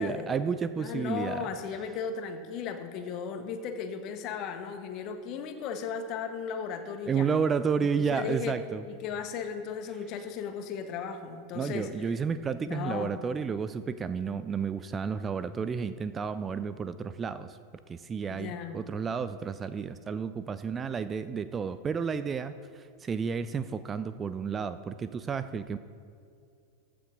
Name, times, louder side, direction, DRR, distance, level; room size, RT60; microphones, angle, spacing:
voice 1, 0.0-1.5 7.1-8.8 11.5-17.6 17.9-25.8, right 6 dB, 20° right, 13 dB, 0.4 m, -31 dB
voice 2, 0.8-7.3 7.8-8.6 8.8-11.9 12.7-13.1 18.3-18.8, left 6 dB, 40° left, 7 dB, 1.2 m, -36 dB
15.0 x 6.8 x 5.2 m, 2.4 s
figure-of-eight pair, 90°, 0 cm